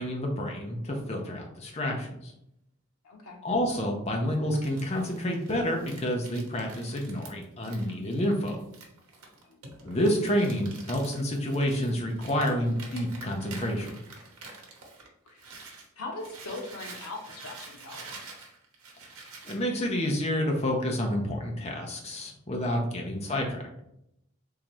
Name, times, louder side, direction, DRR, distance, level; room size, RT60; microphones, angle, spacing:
voice 1, 0.0-2.3 3.4-8.6 9.8-13.9 19.4-23.6, equal, 30° left, 1 dB, 0.6 m, -29 dB
voice 2, 3.0-3.4 9.4-9.6 15.3-15.5 16.0-18.0 22.9-23.3, left 2 dB, 90° left, 1 dB, 0.9 m, -41 dB
Crumpling crinkling, 4.3-15.9 16.2-19.6, right 3 dB, 80° right, 0.9 m, -47 dB
3.7 x 2.8 x 3.0 m, 0.78 s
head